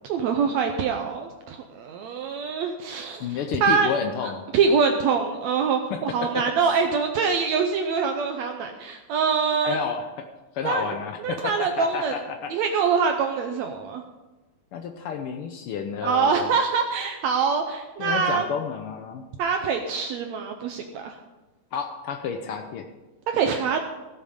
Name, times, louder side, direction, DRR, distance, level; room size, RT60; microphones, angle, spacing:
voice 1, 0.1-3.3 3.6-3.9 4.5-9.8 10.6-10.8 11.2-12.2 12.5-14.0 16.0-18.5 19.4-21.2 23.3-23.8, right 5 dB, 75° right, 4 dB, 1.9 m, -24 dB
voice 2, 3.2-4.4 5.9-6.4 9.6-10.3 10.5-12.5 14.7-16.5 18.0-19.2 21.7-22.9, left 6 dB, 90° left, 5 dB, 1.2 m, -30 dB
15.0 x 7.5 x 5.2 m, 1.1 s
omnidirectional pair, 3.5 m